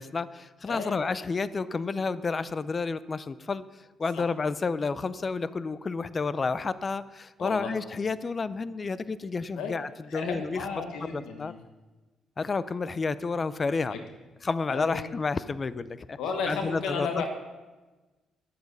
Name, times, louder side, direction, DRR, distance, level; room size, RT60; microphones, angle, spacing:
voice 1, 0.0-3.6 4.0-10.7 11.0-11.5 12.4-14.0 14.4-16.2 16.5-17.1, left 4 dB, 35° left, 16 dB, 0.4 m, -30 dB
voice 2, 0.7-1.1 4.1-4.2 7.4-7.7 9.5-9.7 10.1-11.6 13.9-14.0 14.7-15.1 16.2-17.3, left 5 dB, 85° left, 4 dB, 1.3 m, -33 dB
10.5 x 8.0 x 5.3 m, 1.2 s
cardioid pair, 90°, 0 cm